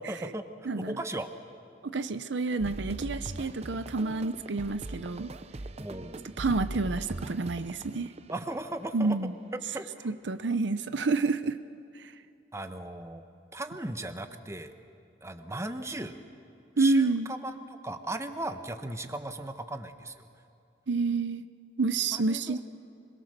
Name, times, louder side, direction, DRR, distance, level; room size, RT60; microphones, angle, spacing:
voice 1, 0.0-0.5 0.9-1.3 5.8-6.4 8.3-9.2 9.5-10.1 12.5-13.2 13.5-14.7 15.2-16.2 16.8-20.3 22.1-22.6, right 1 dB, 15° right, 7 dB, 1.1 m, -37 dB
voice 2, 0.7-1.0 1.8-5.3 6.4-8.1 8.9-9.3 10.0-11.6 16.8-17.3 20.9-21.4 21.8-22.6, right 3 dB, 75° right, 11 dB, 0.7 m, -28 dB
sound 1, 2.6-8.7, right 2 dB, 35° right, 0.6 m, -41 dB
26.5 x 22.0 x 6.7 m, 2.6 s
head